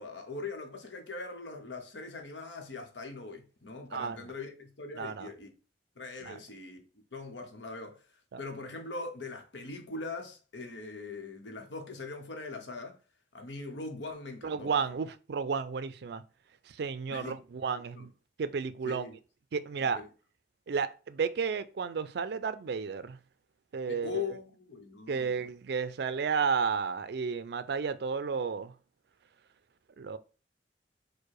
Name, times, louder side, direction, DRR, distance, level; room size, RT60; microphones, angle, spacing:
voice 1, 0.0-5.5 6.0-13.0 13.3-14.7 17.1-17.4 17.9-18.1 18.8-19.2 19.8-20.1 23.9-25.5, left 3 dB, 85° left, 1.0 m, -41 dB
voice 2, 5.0-5.3 6.3-6.4 8.3-8.4 14.4-16.2 16.7-18.1 18.4-19.1 19.5-20.0 20.7-23.2 23.7-24.2 25.1-28.7 30.0-30.2, right 5 dB, 65° right, 0.4 m, -32 dB
4.6 x 2.2 x 4.7 m
head